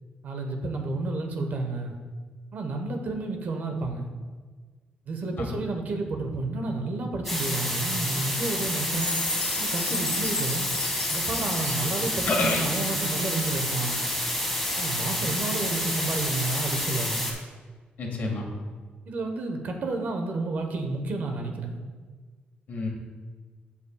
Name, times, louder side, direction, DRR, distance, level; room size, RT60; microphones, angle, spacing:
voice 1, 0.2-2.0 2.5-4.1 5.1-9.2 9.6-10.7 11.1-14.0 14.8-17.3 19.1-21.8, right 3 dB, 55° right, 4 dB, 1.1 m, -31 dB
sound 1, 7.2-17.3, left 1 dB, 5° left, 1.9 m, -29 dB
Chime, 8.9-13.2, left 4 dB, 40° left, 0.8 m, -35 dB
voice 2, 12.3-13.0 18.0-18.5 22.7-22.9, left 2 dB, 55° left, 0 dB, 1.9 m, -28 dB
15.0 x 5.6 x 2.3 m, 1.4 s
cardioid pair, 135°, 3 cm